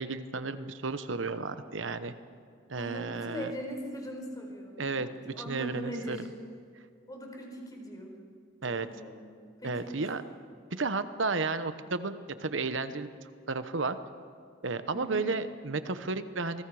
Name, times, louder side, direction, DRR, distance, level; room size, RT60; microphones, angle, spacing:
voice 1, 0.0-2.1 2.7-3.5 4.8-5.1 5.5-6.2 8.6-8.9 9.6-10.2 10.7-13.1 13.5-14.0 14.6-16.6, right 3 dB, 75° right, 11 dB, 1.0 m, -32 dB
voice 2, 2.8-5.0 5.3-6.3 7.1-8.2 8.6-9.2 9.6-10.1 14.9-15.2, equal, 20° left, 1 dB, 4.6 m, -40 dB
27.5 x 21.0 x 4.9 m, 2.2 s
head